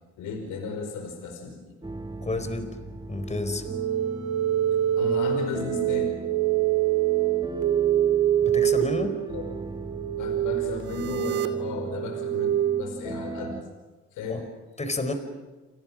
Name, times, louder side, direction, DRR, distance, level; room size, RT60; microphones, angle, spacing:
voice 1, 0.2-1.8 5.0-6.2 9.3-9.4 10.2-13.6 14.1-14.5 15.1-15.2, left 4 dB, 90° left, 5 dB, 5.2 m, -35 dB
sound 1, 1.8-13.6, right 2 dB, 15° right, 3.0 m, -39 dB
voice 2, 2.2-2.8 3.1-3.6 8.4-9.2 14.3-14.4 14.8-15.1, left 2 dB, 20° left, 9 dB, 4.6 m, -30 dB
sound 2, 3.6-12.8, right 11 dB, 85° right, 2.7 m, -25 dB
29.0 x 29.0 x 6.3 m, 1.3 s
cardioid pair, 90°, 30 cm